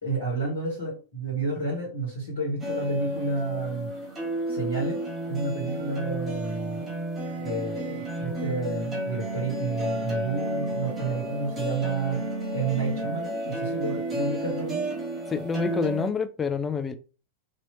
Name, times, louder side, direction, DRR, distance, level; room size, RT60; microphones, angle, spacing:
voice 1, 0.0-3.9 4.5-5.0 5.3-6.8 7.4-12.2 12.5-15.0, right 3 dB, 65° left, 1.7 m, -30 dB
sound 1, 2.6-16.1, right 1 dB, 20° right, 1.4 m, -31 dB
voice 2, 15.3-17.0, left 5 dB, 20° left, 0.4 m, -28 dB
2.9 x 2.8 x 2.9 m
figure-of-eight pair, 90°, 0 cm